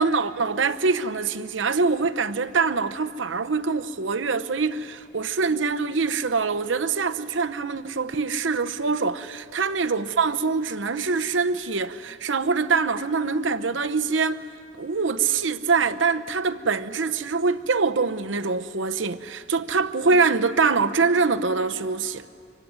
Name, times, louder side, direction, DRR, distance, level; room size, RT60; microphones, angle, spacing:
voice 1, 0.0-14.4 14.8-22.3, right 4 dB, 80° right, 0.9 m, -24 dB
25.0 x 24.0 x 9.6 m
head